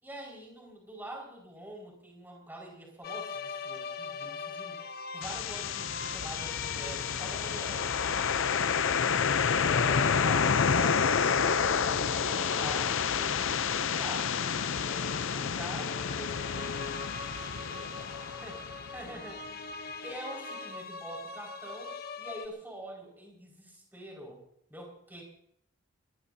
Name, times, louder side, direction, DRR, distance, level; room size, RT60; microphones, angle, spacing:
voice 1, 0.0-4.8 5.1-7.9 9.5-9.9 10.2-14.4 15.3-16.9 17.7-17.9 18.4-19.6 20.0-24.4 24.7-25.2, right 1 dB, 10° right, -1 dB, 5.3 m, -45 dB
sound 1, 3.0-22.5, left 5 dB, 45° left, 0.9 m, -41 dB
sound 2, 5.2-19.1, left 6 dB, 65° left, 0.6 m, -29 dB
24.0 x 20.0 x 2.8 m, 0.71 s
head